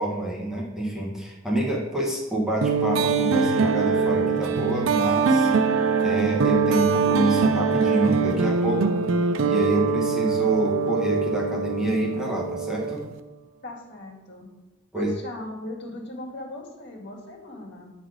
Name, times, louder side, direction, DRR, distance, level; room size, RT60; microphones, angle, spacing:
voice 1, 0.0-5.5 6.0-8.9 9.5-13.0 14.9-15.1, right 1 dB, 5° right, -4 dB, 1.2 m, -27 dB
sound 1, 2.6-13.2, right 5 dB, 85° right, 0.5 m, -23 dB
voice 2, 13.6-14.5 14.9-17.9, left 1 dB, 60° left, -1 dB, 1.9 m, -38 dB
7.7 x 4.2 x 4.9 m, 1.0 s
head